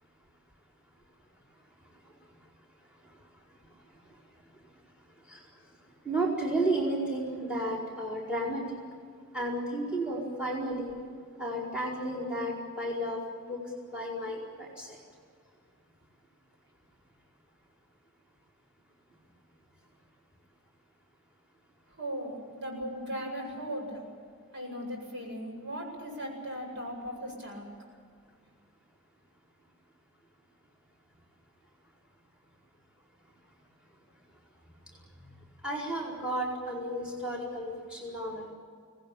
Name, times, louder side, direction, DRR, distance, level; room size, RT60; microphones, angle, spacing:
voice 1, 6.0-8.6 9.3-10.9 11.4-13.6 13.9-15.0 35.6-38.5, right 1 dB, 5° right, -2 dB, 4.9 m, -32 dB
voice 2, 21.9-24.0 24.5-27.7, equal, 55° right, 0 dB, 8.0 m, -38 dB
25.0 x 19.0 x 9.0 m, 2.1 s
head